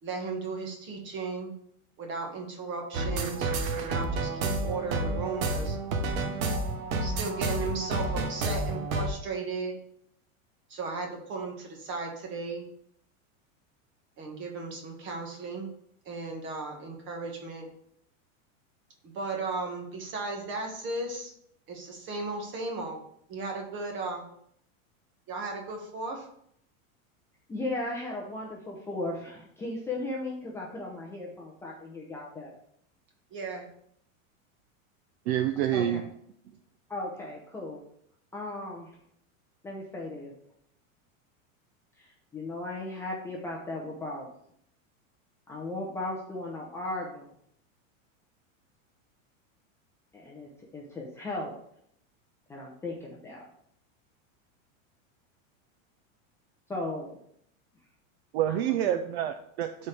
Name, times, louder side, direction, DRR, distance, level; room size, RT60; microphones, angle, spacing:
voice 1, 0.0-1.5 2.0-5.8 6.9-9.7 10.7-12.6 14.2-15.7 16.0-17.7 19.0-21.3 21.7-23.0 23.3-24.2 25.3-26.3 33.3-33.7, right 3 dB, 30° right, 1 dB, 1.6 m, -35 dB
sound 1, 2.9-9.1, right 2 dB, 85° right, 1.3 m, -30 dB
voice 2, 27.5-32.5 35.7-36.0 36.9-37.8 38.3-38.9 39.6-40.3 42.0-44.3 45.5-47.3 50.1-51.5 52.5-53.4 56.7-57.2 58.5-59.0, left 2 dB, 5° left, -3 dB, 0.6 m, -36 dB
voice 3, 35.3-36.1 58.3-59.9, right 11 dB, 50° right, 9 dB, 0.5 m, -28 dB
12.0 x 4.4 x 3.4 m, 0.68 s
supercardioid pair, 165°, 41 cm